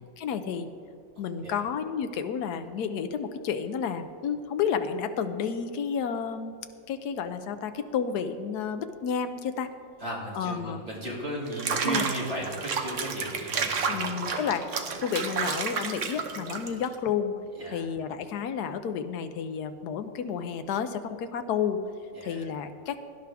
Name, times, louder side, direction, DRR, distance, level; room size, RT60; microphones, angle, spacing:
voice 1, 0.2-0.7 1.2-6.5 6.9-9.7 10.3-10.8 11.8-12.1 13.9-14.6 15.0-17.3 17.7-21.8 22.2-23.0, left 7 dB, 65° left, 9 dB, 1.1 m, -31 dB
voice 2, 10.0-14.0 14.3-14.5 17.6-17.8 22.2-22.4, right 1 dB, 30° right, -5 dB, 3.0 m, -35 dB
Water / Bathtub (filling or washing), 11.5-17.0, right 5 dB, 50° right, 1.0 m, -31 dB
17.0 x 11.0 x 3.5 m, 2.2 s
omnidirectional pair, 2.1 m